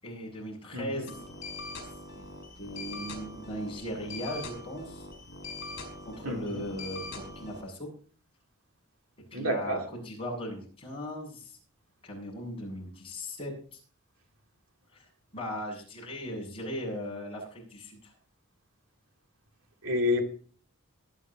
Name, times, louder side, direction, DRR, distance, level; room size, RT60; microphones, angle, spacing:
voice 1, 0.0-1.2 2.6-5.1 6.0-7.9 9.3-11.6 12.0-13.8 14.9-18.1, equal, 25° left, -2 dB, 7.4 m, -38 dB
sound 1, 1.1-7.6, left 2 dB, 55° left, 5.5 m, -42 dB
voice 2, 6.2-6.6 9.3-9.8 19.8-20.3, left 2 dB, 70° right, 2 dB, 2.5 m, -29 dB
23.0 x 10.0 x 3.0 m, 0.43 s
head